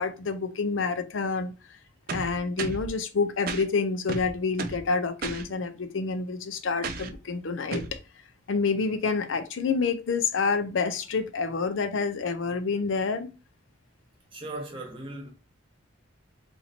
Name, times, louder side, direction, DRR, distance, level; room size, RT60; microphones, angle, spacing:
voice 1, 0.0-1.5 2.1-7.8 8.5-13.3, left 4 dB, 75° left, 0.5 m, -28 dB
sound 1, 2.1-2.9 3.5-3.6 4.1-4.9 5.2-5.4 6.8-7.2 7.7-8.0, right 4 dB, 45° right, 0.4 m, -33 dB
voice 2, 14.3-15.3, right 2 dB, 25° right, 1.0 m, -37 dB
2.9 x 2.7 x 4.1 m
head